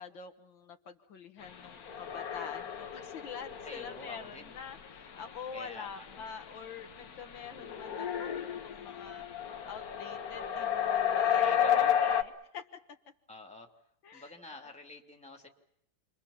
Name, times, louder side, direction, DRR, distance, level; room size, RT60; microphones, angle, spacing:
voice 1, 0.0-9.3 9.6-12.8 14.0-14.7, left 6 dB, 70° left, 7 dB, 2.1 m, -46 dB
sound 1, 1.7-12.2, left 9 dB, 50° left, 1.6 m, -32 dB
voice 2, 3.6-4.5 5.5-6.1 11.4-12.0 13.3-13.7 14.1-15.5, left 2 dB, 5° left, 3 dB, 2.9 m, -48 dB
28.5 x 23.5 x 7.3 m, 0.76 s
omnidirectional pair, 2.2 m